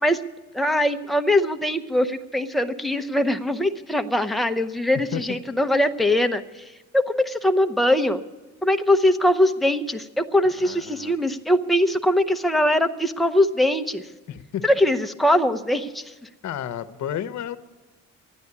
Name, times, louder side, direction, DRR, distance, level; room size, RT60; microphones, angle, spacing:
voice 1, 0.5-8.2 8.6-14.0 14.6-16.1, left 1 dB, ahead, 6 dB, 0.7 m, -22 dB
voice 2, 10.6-11.1 14.3-14.6 16.4-17.6, left 10 dB, 65° left, 12 dB, 0.9 m, -31 dB
12.0 x 10.0 x 9.7 m, 1.2 s
cardioid pair, 90°, 30 cm